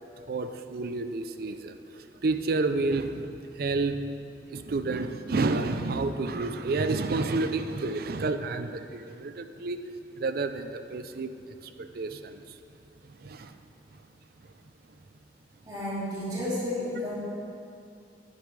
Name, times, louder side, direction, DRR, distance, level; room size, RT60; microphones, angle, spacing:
voice 1, 0.3-9.8 10.2-11.3 11.6-12.5 13.2-13.5, right 3 dB, 55° right, 9 dB, 0.5 m, -30 dB
voice 2, 15.6-17.1, left 1 dB, 25° right, -9 dB, 2.4 m, -31 dB
10.0 x 9.6 x 3.2 m, 2.5 s
head